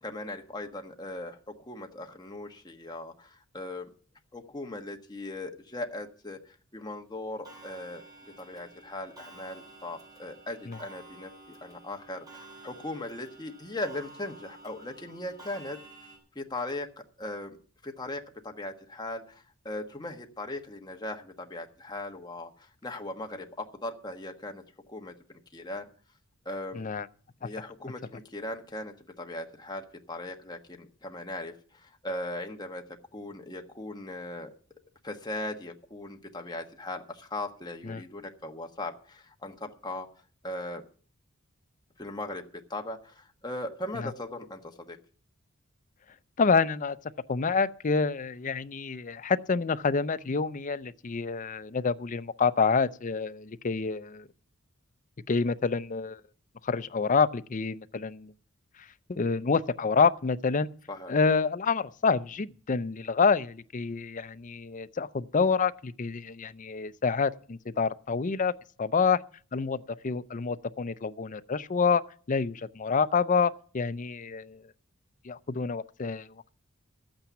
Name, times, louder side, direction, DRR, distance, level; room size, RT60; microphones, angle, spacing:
voice 1, 0.0-3.9 4.3-8.0 8.4-11.3 11.6-15.8 16.3-16.9 17.2-17.6 17.8-24.6 24.9-25.8 26.4-26.8 27.4-32.8 33.1-34.5 35.0-40.1 40.4-40.8 42.0-45.0 60.9-61.1, left 1 dB, 20° left, 1.3 m, -38 dB
Clock, 7.4-16.2, right 2 dB, 20° right, 3.8 m, -51 dB
voice 2, 26.7-27.1 37.8-38.0 44.0-44.1 46.4-47.0 47.3-54.3 55.3-56.2 56.6-58.3 59.1-60.7 61.1-68.5 68.8-69.2 69.5-74.6 75.2-76.3, left 5 dB, 35° left, 0.5 m, -27 dB
12.5 x 8.9 x 7.0 m
head